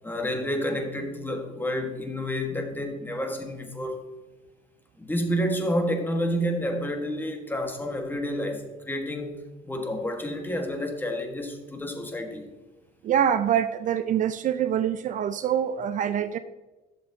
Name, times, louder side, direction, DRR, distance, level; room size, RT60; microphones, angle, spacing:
voice 1, 0.0-4.0 5.0-9.3 9.6-12.5, equal, 10° left, 1.4 m, -29 dB
voice 2, 13.0-16.4, right 9 dB, 50° right, 0.4 m, -25 dB
11.5 x 6.9 x 2.8 m
cardioid pair, 110°, 17 cm